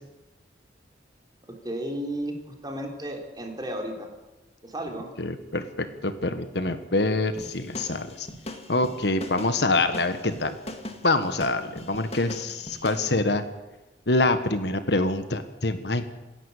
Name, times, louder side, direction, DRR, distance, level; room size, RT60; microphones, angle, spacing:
voice 1, 1.6-4.1 4.6-5.1, right 1 dB, 20° right, 2 dB, 3.5 m, -33 dB
voice 2, 5.2-8.3 8.7-10.6 11.0-13.4 14.1-16.1, left 2 dB, 65° left, 9 dB, 1.4 m, -25 dB
sound 1, 7.4-13.1, left 1 dB, 35° left, 2.0 m, -39 dB
27.5 x 11.0 x 8.4 m, 1.1 s
head